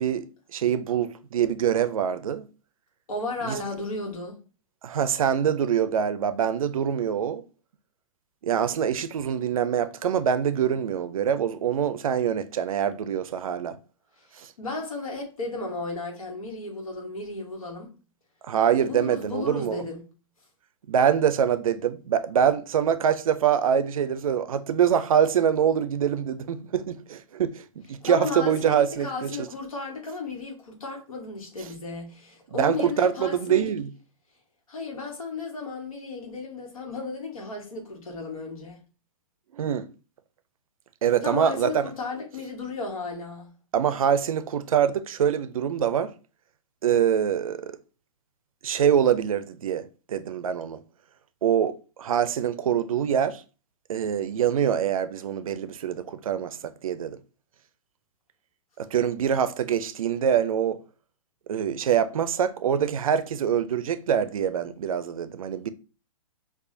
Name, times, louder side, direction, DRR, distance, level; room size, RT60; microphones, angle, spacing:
voice 1, 0.0-2.5 3.4-3.6 4.8-7.4 8.4-13.8 14.4-14.5 18.5-19.8 20.9-29.5 32.6-33.9 39.5-39.9 41.0-41.9 43.7-46.1 46.8-47.8 48.6-50.8 51.4-53.4 53.9-57.2 58.8-60.8 61.5-65.7, right 8 dB, 75° right, 0.4 m, -24 dB
voice 2, 3.1-4.3 14.6-17.9 18.9-20.0 28.0-33.7 34.7-38.8 41.2-43.5, left 3 dB, 80° left, 1.2 m, -34 dB
4.7 x 2.3 x 2.6 m
hypercardioid pair, 120°, 18 cm